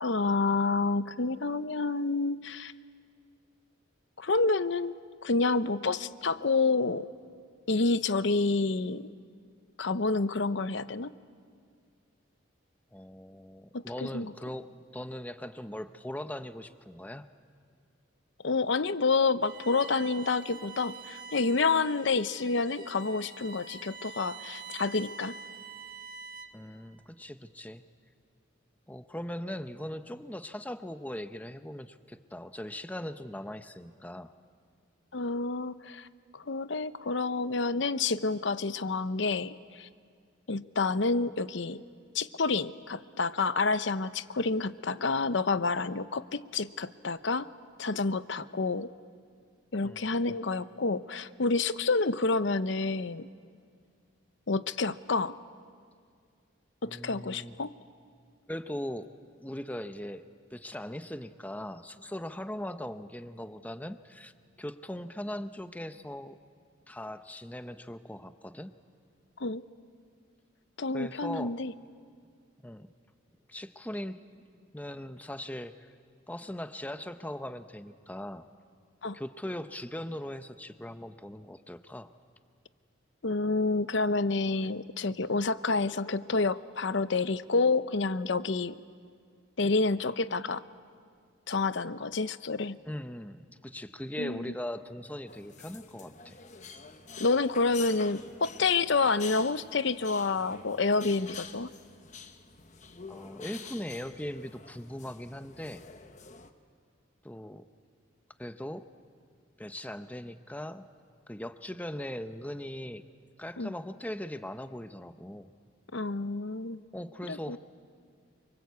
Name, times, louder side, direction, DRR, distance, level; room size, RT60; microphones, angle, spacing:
voice 1, 0.0-2.7 4.2-7.1 7.7-9.1 9.8-11.1 14.0-14.3 18.4-25.3 35.1-36.1 36.3-39.9 40.5-41.8 42.1-47.5 47.8-48.9 49.7-53.3 54.5-55.4 56.8-57.7 69.4-69.6 70.8-71.7 79.0-79.2 83.2-88.8 89.6-90.6 91.5-92.8 94.2-94.4 97.2-101.7 113.6-113.7 115.9-116.8 117.3-117.6, left 3 dB, 65° left, 14 dB, 0.7 m, -28 dB
voice 2, 12.9-17.3 26.5-27.8 28.9-34.3 49.8-50.1 56.8-57.5 58.5-59.1 59.4-60.2 60.5-64.3 64.6-66.4 66.9-68.7 70.9-71.6 72.6-72.9 73.5-75.9 76.3-78.5 79.1-82.1 92.9-96.4 103.1-105.8 107.2-107.6 108.4-108.8 109.6-110.8 111.3-113.0 113.4-115.5 116.9-117.6, left 1 dB, 10° left, 10 dB, 0.7 m, -40 dB
Bowed string instrument, 19.4-26.7, right 5 dB, 45° right, 1.8 m, -46 dB
sound 1, 95.3-106.5, left 5 dB, 35° left, 1.1 m, -47 dB
28.0 x 25.0 x 8.3 m, 2.1 s
head